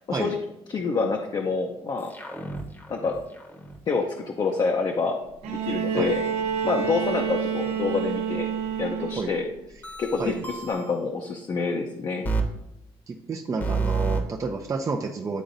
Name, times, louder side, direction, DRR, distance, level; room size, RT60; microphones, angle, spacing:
voice 1, 0.7-2.1 2.9-3.1 3.9-5.2 5.5-6.2 6.6-8.5 8.8-9.4 10.0-12.3, left 4 dB, 40° left, 2 dB, 0.6 m, -27 dB
sound 1, 2.0-3.8 9.8-11.0 12.2-12.4 13.6-14.2, right 4 dB, 15° left, 0.9 m, -30 dB
Bowed string instrument, 5.4-9.5 10.7-10.8, right 7 dB, 80° right, 0.7 m, -28 dB
voice 2, 13.1-15.4, right 4 dB, 30° right, 1 dB, 0.5 m, -30 dB
10.0 x 3.9 x 2.6 m, 0.87 s
cardioid pair, 110°, 11 cm